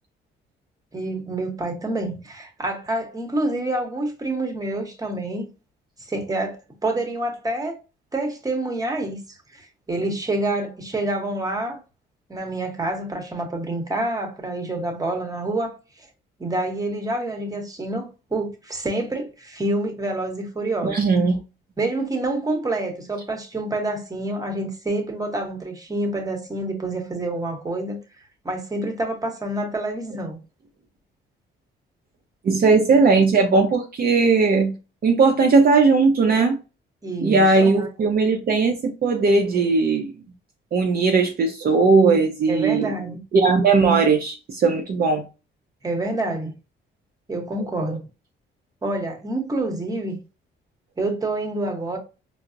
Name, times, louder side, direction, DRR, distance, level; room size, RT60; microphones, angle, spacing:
voice 1, 0.9-5.5 6.1-7.8 8.1-9.2 9.5-11.8 12.3-16.1 16.4-21.0 21.8-28.0 28.4-30.4 37.0-37.9 42.5-43.2 45.8-46.5 47.3-48.0 48.8-50.2 51.0-52.0, right 2 dB, 20° right, 1.0 m, -27 dB
voice 2, 20.8-21.4 32.4-34.8 35.0-36.6 37.2-40.1 40.7-42.9 43.3-45.2, right 4 dB, 50° right, 0.6 m, -18 dB
4.5 x 2.0 x 2.5 m
cardioid pair, 90°, 20 cm